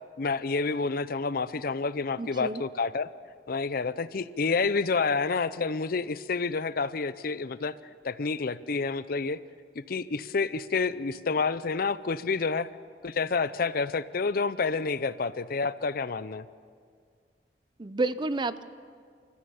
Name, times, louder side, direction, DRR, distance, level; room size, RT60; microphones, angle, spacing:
voice 1, 0.2-3.1 3.5-7.7 8.0-9.4 9.8-12.7 13.0-16.5, left 4 dB, 55° left, 15 dB, 0.6 m, -29 dB
voice 2, 2.2-2.6 17.8-18.6, right 2 dB, 25° right, 14 dB, 0.5 m, -30 dB
27.0 x 14.5 x 7.1 m, 2.1 s
head